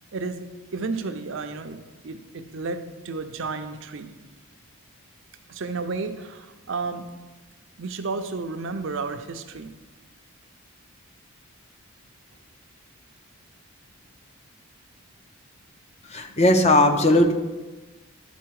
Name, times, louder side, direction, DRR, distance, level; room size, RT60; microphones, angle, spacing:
voice 1, 0.1-0.4 0.7-1.8 2.0-4.2 5.5-7.1 7.8-9.7, right 4 dB, 55° right, 8 dB, 0.5 m, -32 dB
voice 2, 16.0-17.3, left 1 dB, 30° left, 5 dB, 0.6 m, -18 dB
11.5 x 4.0 x 4.7 m, 1.2 s
head